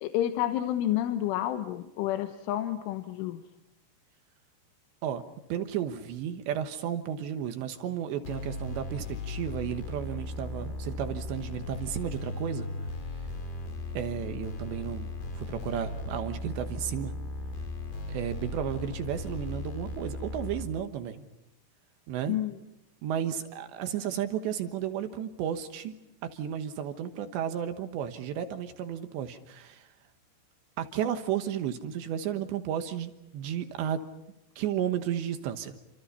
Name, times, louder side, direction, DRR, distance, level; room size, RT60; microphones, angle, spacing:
voice 1, 0.0-3.4 22.3-22.6, left 12 dB, 90° left, 8 dB, 3.6 m, -29 dB
voice 2, 5.5-12.7 13.9-15.1 15.4-17.1 18.1-21.3 22.1-22.4 23.0-25.9 26.2-29.9 30.8-34.0 34.6-35.8, right 9 dB, 75° right, 8 dB, 3.3 m, -33 dB
sound 1, 8.2-20.6, left 2 dB, 65° left, 5.6 m, -37 dB
29.5 x 26.0 x 5.5 m, 0.92 s
omnidirectional pair, 5.5 m